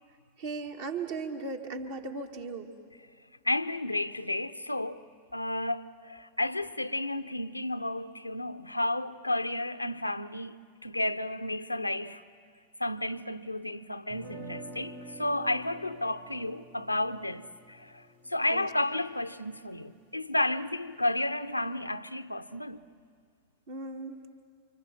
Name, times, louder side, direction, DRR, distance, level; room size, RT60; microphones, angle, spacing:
voice 1, 0.4-2.7 18.5-18.7 23.7-24.2, right 3 dB, 55° right, 2.1 m, -37 dB
voice 2, 3.4-5.0 5.3-12.2 12.8-22.8, left 1 dB, 85° left, 0.6 m, -32 dB
sound 1, 14.1-20.1, right 2 dB, 85° right, 4.3 m, -49 dB
29.5 x 25.5 x 7.5 m
figure-of-eight pair, 90°, 0 cm